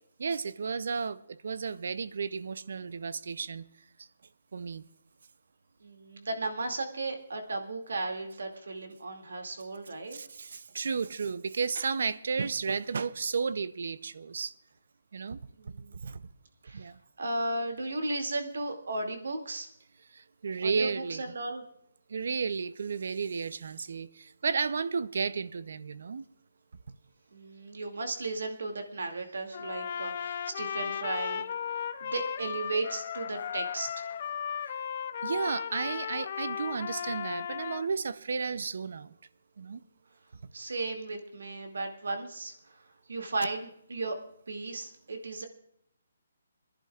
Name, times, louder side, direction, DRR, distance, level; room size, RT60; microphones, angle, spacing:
voice 1, 0.2-3.7 4.0-4.1 4.5-4.8 10.1-14.5 15.1-15.4 16.0-16.2 16.7-16.9 20.1-21.2 22.1-26.2 35.2-39.1 39.6-39.8, right 5 dB, 55° right, 0.6 m, -33 dB
voice 2, 5.8-10.2 15.6-16.0 16.6-16.9 17.2-19.7 20.6-21.6 27.3-31.4 32.0-34.1 40.5-42.8 43.1-44.2 44.5-45.4, right 2 dB, 90° right, 2.4 m, -35 dB
Trumpet, 29.5-37.9, left 8 dB, 35° left, 0.5 m, -36 dB
27.0 x 11.0 x 2.4 m
hypercardioid pair, 175°, 0 cm